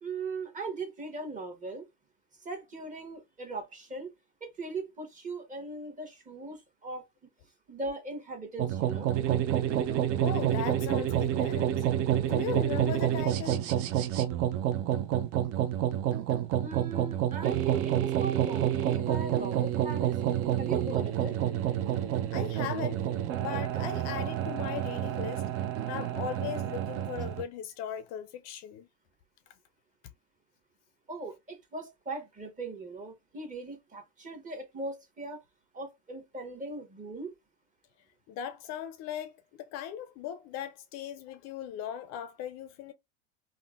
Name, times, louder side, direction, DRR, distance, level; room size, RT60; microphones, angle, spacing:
voice 1, 0.0-1.9 2.4-4.1 4.4-7.0 7.4-9.1 16.6-20.2 20.6-21.4 31.1-35.4 35.7-37.3, right 3 dB, 20° right, 1.0 m, -39 dB
sound 1, 8.6-27.4, right 11 dB, 45° right, 0.4 m, -29 dB
voice 2, 10.2-11.8 12.2-13.7 22.3-23.1 23.4-25.4 25.9-28.9 38.3-42.9, left 9 dB, 50° left, 0.5 m, -38 dB
3.6 x 2.1 x 2.3 m
supercardioid pair, 110°, 36 cm